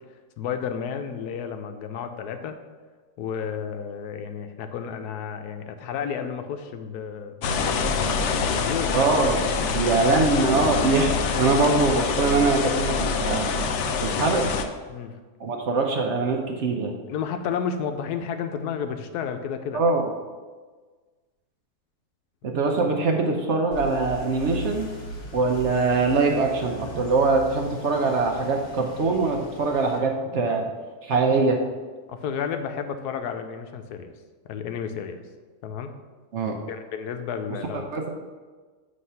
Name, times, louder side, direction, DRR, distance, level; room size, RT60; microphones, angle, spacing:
voice 1, 0.4-2.6 3.2-7.9 8.5-9.0 9.6-9.8 14.9-15.2 17.1-19.8 32.1-34.1 34.5-35.2 35.6-35.9 36.7-37.9, left 7 dB, 90° left, 7 dB, 1.1 m, -32 dB
sound 1, 7.4-14.7, left 5 dB, 70° left, 0.7 m, -25 dB
voice 2, 8.9-9.4 9.7-11.1 11.4-13.5 14.0-14.5 15.4-16.9 19.7-20.1 22.4-24.9 25.3-30.6 31.0-31.6 36.3-36.6 37.7-38.1, right 3 dB, 60° right, 2 dB, 0.8 m, -23 dB
sound 2, 23.7-30.0, equal, 50° left, 1.4 m, -39 dB
7.7 x 3.2 x 5.5 m, 1.4 s
omnidirectional pair, 1.7 m